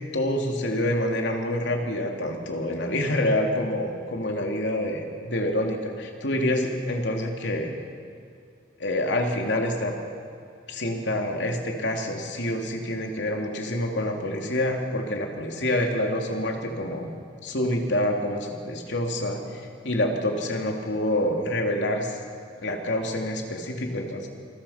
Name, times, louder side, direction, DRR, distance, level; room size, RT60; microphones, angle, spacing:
voice 1, 0.1-7.7 8.8-9.9 10.7-17.1 17.4-22.2 22.6-24.3, left 1 dB, 85° left, 2 dB, 2.9 m, -27 dB
27.5 x 21.5 x 5.8 m, 2.4 s
head